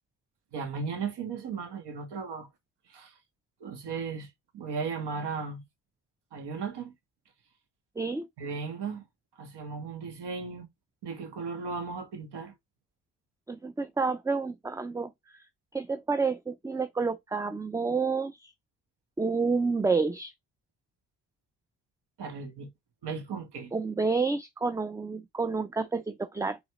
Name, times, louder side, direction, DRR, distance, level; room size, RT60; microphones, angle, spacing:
voice 1, 0.5-2.5 2.9-3.1 3.6-5.6 6.3-6.9 8.4-9.0 9.4-10.7 11.0-12.5 22.2-22.7 23.0-23.7, right 5 dB, 75° right, 2.1 m, -36 dB
voice 2, 8.0-8.3 13.5-15.4 15.7-18.5 19.2-20.3 23.7-26.6, right 4 dB, 10° right, 0.3 m, -29 dB
4.9 x 3.9 x 4.9 m
cardioid pair, 85°, 41 cm